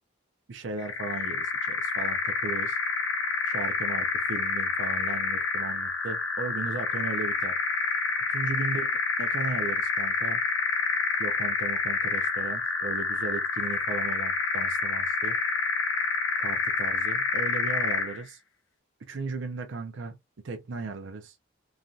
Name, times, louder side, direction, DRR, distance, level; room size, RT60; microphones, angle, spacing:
voice 1, 0.5-2.8 3.5-7.6 8.3-8.9 9.2-10.4 11.2-15.4 16.4-18.4 19.1-20.2 20.4-21.4, right 3 dB, 65° right, 0.5 m, -36 dB
sound 1, 0.8-18.2, left 4 dB, 85° left, 0.6 m, -28 dB
3.1 x 2.6 x 2.3 m
head